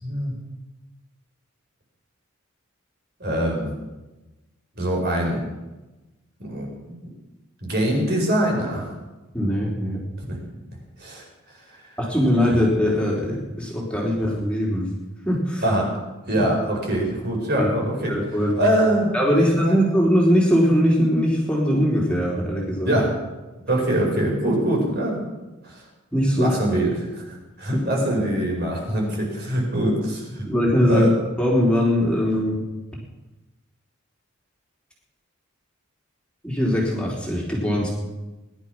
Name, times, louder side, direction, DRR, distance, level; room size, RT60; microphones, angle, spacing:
voice 1, 0.0-0.3 3.2-3.7 4.7-5.5 6.4-6.9 7.6-8.9 10.3-10.4 10.7-11.2 11.7-11.8 15.6-15.9 16.2-18.2 18.6-19.8 22.8-23.1 23.6-25.2 25.6-25.8 26.3-30.5 30.8-31.1, right 1 dB, 50° right, 0 dB, 5.1 m, -24 dB
voice 2, 9.3-10.0 12.0-14.9 15.2-15.6 16.4-16.5 17.6-17.7 18.1-18.6 19.1-23.0 26.1-26.6 30.4-31.1 31.4-32.6 36.4-37.9, equal, 5° left, -4 dB, 3.3 m, -21 dB
19.5 x 11.5 x 6.0 m, 1.1 s
head